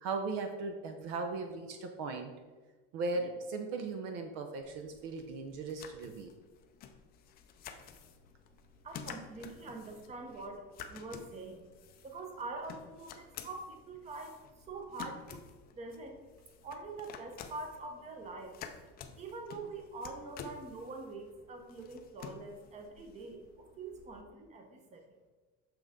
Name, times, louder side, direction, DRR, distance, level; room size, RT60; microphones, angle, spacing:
voice 1, 0.0-2.3 2.9-6.3, right 3 dB, 55° right, 5 dB, 0.7 m, -37 dB
sound 1, 4.6-24.2, left 7 dB, 30° left, 0.5 m, -51 dB
voice 2, 8.8-11.6 12.0-14.4 14.6-15.4 15.7-16.2 16.6-18.5 19.2-23.4 23.8-25.0, right 3 dB, 20° right, 3 dB, 0.9 m, -44 dB
6.7 x 6.0 x 3.6 m, 1.3 s
cardioid pair, 160°, 32 cm